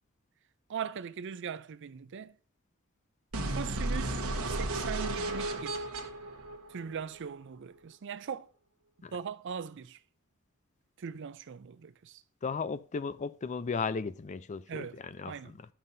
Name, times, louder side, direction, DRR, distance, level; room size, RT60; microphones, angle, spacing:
voice 1, 0.7-2.4 3.5-5.9 6.7-8.5 9.1-10.0 11.0-12.2 14.7-15.0 15.3-15.5, right 7 dB, 55° right, 0.4 m, -40 dB
sound 1, 3.3-7.3, right 2 dB, 85° right, 1.2 m, -34 dB
voice 2, 12.4-15.7, left 5 dB, 35° left, 0.4 m, -36 dB
12.5 x 5.6 x 2.7 m
head